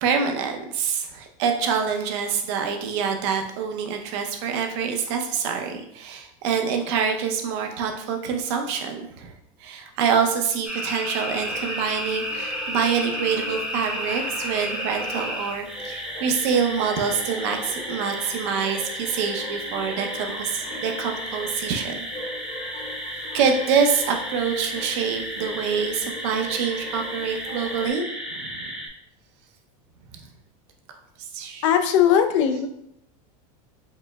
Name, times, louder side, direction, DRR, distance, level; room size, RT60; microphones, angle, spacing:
voice 1, 0.0-9.3 9.6-22.0 23.3-28.7 31.3-31.7, right 6 dB, 50° right, 4 dB, 0.6 m, -26 dB
sound 1, 10.6-28.9, equal, 5° right, 0.7 m, -33 dB
sound 2, 11.3-27.9, left 1 dB, 25° left, 0.8 m, -40 dB
voice 2, 31.6-32.7, left 9 dB, 55° left, 7 dB, 0.4 m, -19 dB
4.9 x 3.3 x 2.2 m, 0.76 s
supercardioid pair, 180°, 19 cm